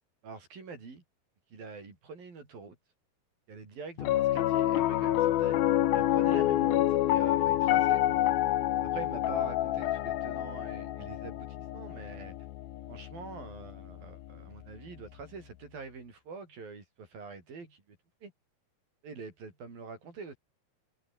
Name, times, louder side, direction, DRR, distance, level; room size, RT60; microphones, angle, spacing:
voice 1, 0.2-1.0 1.5-2.8 3.5-8.2 8.9-12.4 12.9-18.3 19.0-20.4, right 4 dB, 55° right, 7.6 m, -45 dB
Piano, 4.0-14.4, left 13 dB, 65° left, 2.8 m, -28 dB
omnidirectional pair, 5.0 m